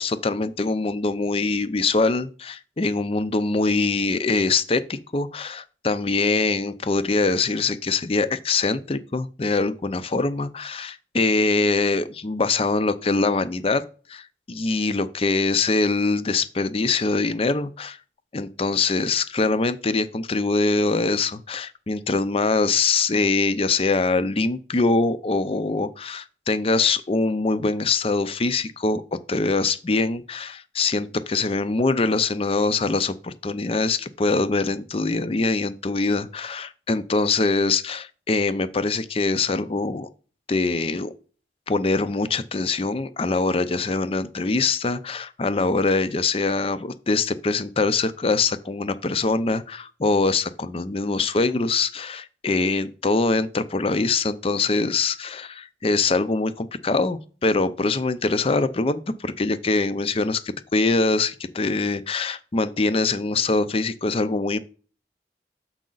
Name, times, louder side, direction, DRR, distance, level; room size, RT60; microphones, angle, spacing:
voice 1, 0.0-13.8 14.1-18.0 18.3-29.0 29.3-40.1 40.5-41.1 41.7-64.6, left 3 dB, 35° left, 0.5 m, -23 dB
7.4 x 4.9 x 3.9 m
head